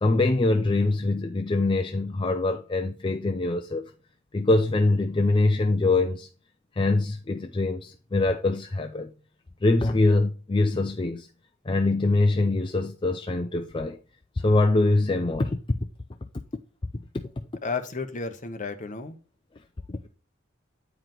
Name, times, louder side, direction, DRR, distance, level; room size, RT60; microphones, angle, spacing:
voice 1, 0.0-3.9 4.3-6.3 6.8-9.1 9.6-11.3 11.7-14.0 14.4-15.8 19.9-20.0, left 2 dB, 25° left, 0.5 m, -23 dB
voice 2, 17.6-19.2, left 4 dB, 40° left, 1.0 m, -32 dB
9.0 x 4.9 x 3.9 m
head